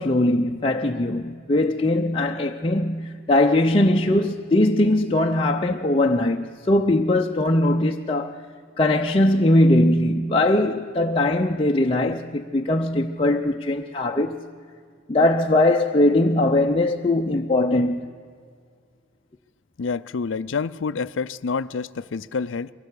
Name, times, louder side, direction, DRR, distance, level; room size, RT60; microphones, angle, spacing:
voice 1, 0.0-8.4 8.8-14.4 15.1-18.1, left 1 dB, 30° left, 0.6 m, -20 dB
voice 2, 19.8-22.7, left 5 dB, 70° left, 0.5 m, -28 dB
23.0 x 17.5 x 8.3 m
head